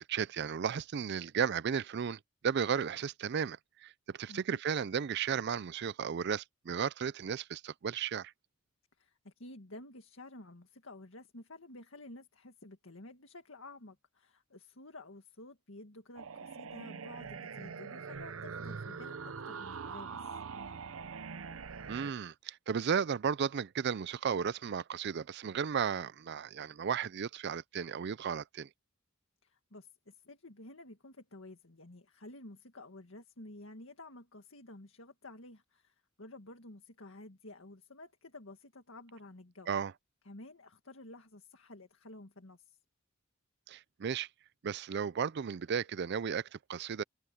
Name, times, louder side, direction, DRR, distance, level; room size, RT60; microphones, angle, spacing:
voice 1, 0.0-8.3 21.9-28.7 39.7-39.9 43.7-44.3 44.6-47.0, right 7 dB, 55° right, 0.4 m, -34 dB
voice 2, 4.3-4.6 9.0-20.3 29.4-39.7 40.3-42.8, left 2 dB, 75° left, 1.9 m, -51 dB
sound 1, 16.2-22.1, right 5 dB, 85° right, 0.7 m, -43 dB
head